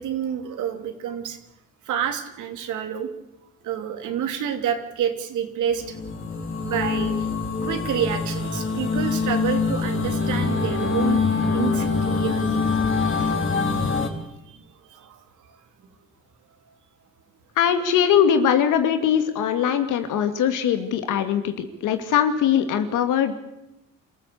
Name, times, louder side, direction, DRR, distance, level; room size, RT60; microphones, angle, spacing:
voice 1, 0.0-1.4 1.9-3.1 3.6-6.1 6.6-7.3 7.6-12.6 13.7-14.6 14.9-15.2 21.8-22.0, right 9 dB, 80° right, 6 dB, 3.3 m, -29 dB
sound 1, 5.8-14.1, left 4 dB, 40° left, 3.8 m, -24 dB
voice 2, 17.6-23.3, left 8 dB, 85° left, 8 dB, 2.5 m, -21 dB
27.0 x 14.5 x 8.6 m, 0.90 s
cardioid pair, 90°, 30 cm